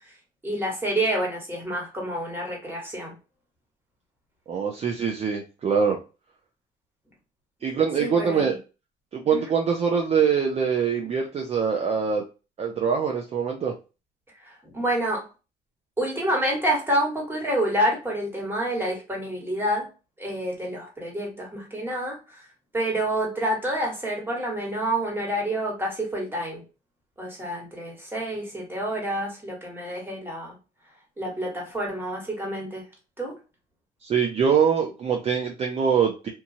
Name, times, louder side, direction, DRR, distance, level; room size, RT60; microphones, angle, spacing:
voice 1, 0.4-3.1 8.0-8.4 9.3-9.5 14.4-15.3 16.0-19.9 20.2-22.4 22.7-26.6 27.2-30.5 31.2-32.8 33.2-33.4, right 1 dB, 15° right, -1 dB, 1.3 m, -28 dB
voice 2, 4.5-6.0 7.6-8.5 9.1-12.2 12.6-13.7 34.0-36.3, right 6 dB, 40° right, 2 dB, 0.5 m, -23 dB
2.9 x 2.3 x 2.6 m, 0.31 s
cardioid pair, 110°, 17 cm